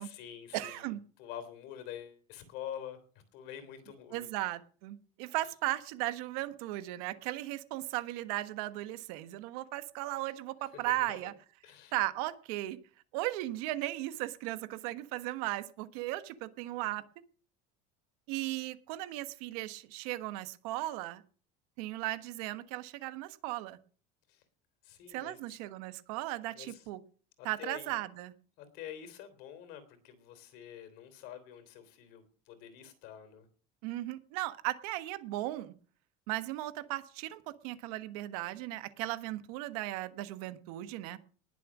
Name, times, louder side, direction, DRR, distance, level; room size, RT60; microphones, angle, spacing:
voice 1, 0.0-3.0 3.3-4.3 10.6-11.3 11.6-11.9 24.3-24.4 24.8-25.6 26.5-26.9 27.4-28.0 28.6-33.4, left 10 dB, 55° left, 11 dB, 3.3 m, -47 dB
voice 2, 0.5-1.0 4.1-11.3 11.9-12.8 13.1-17.0 18.3-21.2 21.8-23.8 25.1-27.0 27.4-28.3 33.8-35.7 36.3-41.2, right 16 dB, 70° right, 14 dB, 1.3 m, -36 dB
20.0 x 7.4 x 6.1 m, 0.42 s
cardioid pair, 180°, 20 cm